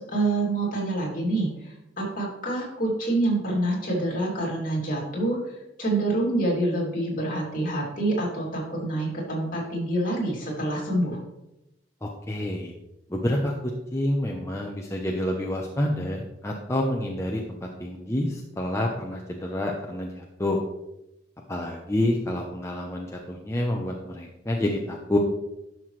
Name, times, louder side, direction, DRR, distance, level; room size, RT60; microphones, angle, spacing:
voice 1, 0.1-5.4 5.8-11.2, right 2 dB, 50° left, -3 dB, 2.8 m, -26 dB
voice 2, 12.0-12.7 13.1-13.5 13.9-20.6 21.5-25.2, left 1 dB, 15° left, 0 dB, 0.7 m, -28 dB
11.0 x 6.0 x 3.2 m, 0.92 s
head